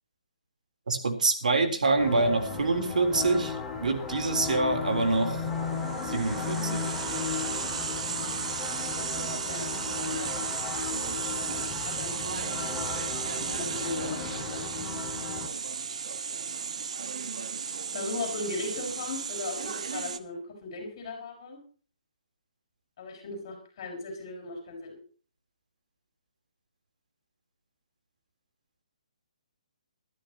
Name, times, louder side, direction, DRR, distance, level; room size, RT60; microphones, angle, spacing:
voice 1, 0.9-5.4 6.0-6.9, right 3 dB, 85° right, 6 dB, 3.7 m, -26 dB
sound 1, 2.0-15.5, left 4 dB, 5° left, 2.0 m, -35 dB
sound 2, 5.5-20.2, right 6 dB, 60° right, 1.3 m, -34 dB
voice 2, 11.8-13.1 13.4-14.7 17.9-21.6 23.0-25.0, left 3 dB, 35° left, 3 dB, 6.0 m, -38 dB
22.5 x 12.5 x 3.0 m, 0.41 s
hypercardioid pair, 170°, 4 cm